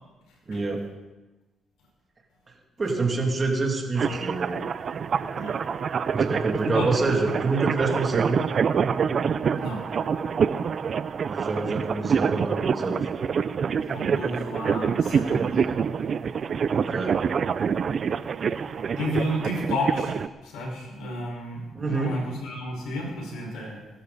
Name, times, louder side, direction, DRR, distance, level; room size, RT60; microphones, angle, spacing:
voice 1, 0.5-0.8 2.8-4.7 6.1-8.4 11.3-13.1 16.7-17.2 21.7-22.2, right 3 dB, 30° right, 1 dB, 2.7 m, -26 dB
sound 1, 4.0-20.3, right 6 dB, 50° right, 0.6 m, -26 dB
voice 2, 13.9-15.6 19.0-20.1 20.4-23.8, left 1 dB, 90° left, 0 dB, 5.3 m, -31 dB
21.0 x 12.0 x 4.2 m, 1.1 s
cardioid pair, 90°, 0 cm